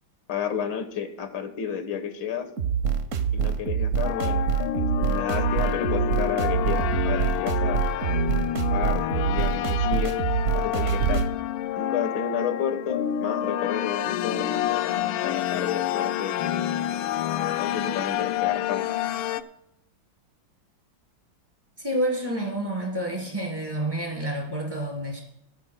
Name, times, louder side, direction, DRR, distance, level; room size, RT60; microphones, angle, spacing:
voice 1, 0.3-2.5 3.3-4.5 4.7-8.2 8.7-10.2 10.5-11.3 11.8-16.7 17.3-18.9, left 7 dB, 70° left, 9 dB, 1.9 m, -32 dB
sound 1, 2.6-11.3, right 7 dB, 50° right, 1.0 m, -25 dB
sound 2, 4.0-19.4, left 11 dB, 90° left, 1.4 m, -28 dB
voice 2, 21.8-25.2, right 1 dB, 10° right, -3 dB, 3.5 m, -29 dB
20.0 x 12.5 x 2.2 m, 0.82 s
omnidirectional pair, 2.2 m